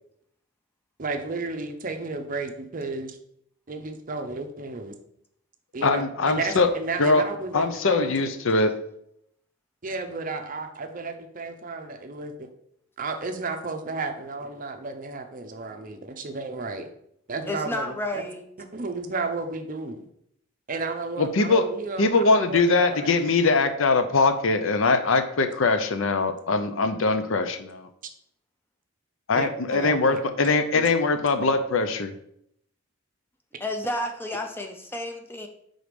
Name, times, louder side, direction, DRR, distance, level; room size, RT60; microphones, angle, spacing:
voice 1, 1.0-3.2 3.7-5.0 5.7-8.1 9.8-12.5 13.0-16.9 17.3-18.2 18.6-20.1 20.7-23.4 29.3-30.9, right 3 dB, 40° right, 6 dB, 0.6 m, -33 dB
voice 2, 5.8-6.7 7.0-7.2 7.5-8.7 21.2-21.6 22.0-27.9 29.3-32.1, left 3 dB, 60° left, 8 dB, 0.5 m, -22 dB
voice 3, 17.5-18.4 33.6-35.5, left 1 dB, 10° left, 4 dB, 0.6 m, -31 dB
4.8 x 3.9 x 5.1 m, 0.74 s
head